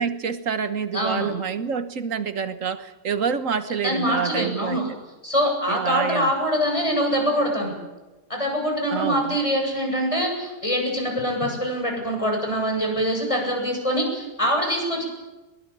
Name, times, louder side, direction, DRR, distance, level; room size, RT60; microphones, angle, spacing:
voice 1, 0.0-4.8 5.7-6.3 8.9-9.4, right 6 dB, 75° right, 11 dB, 1.6 m, -27 dB
voice 2, 0.9-1.3 3.8-4.9 5.2-7.7 8.3-15.0, equal, 25° left, 1 dB, 8.0 m, -24 dB
22.0 x 21.0 x 8.7 m, 1.1 s
omnidirectional pair, 1.4 m